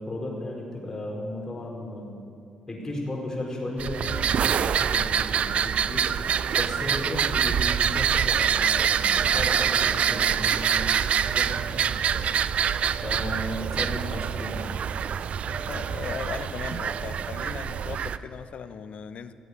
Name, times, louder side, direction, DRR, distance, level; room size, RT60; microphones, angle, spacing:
voice 1, 0.0-2.2 2.7-6.0 6.5-12.3 13.0-14.7, left 1 dB, 25° left, -2 dB, 4.6 m, -35 dB
sound 1, 3.8-18.2, right 8 dB, 60° right, 0.5 m, -25 dB
voice 2, 15.4-19.3, left 7 dB, 60° left, 12 dB, 0.8 m, -38 dB
17.0 x 8.2 x 9.8 m, 2.4 s
cardioid pair, 80°, 2 cm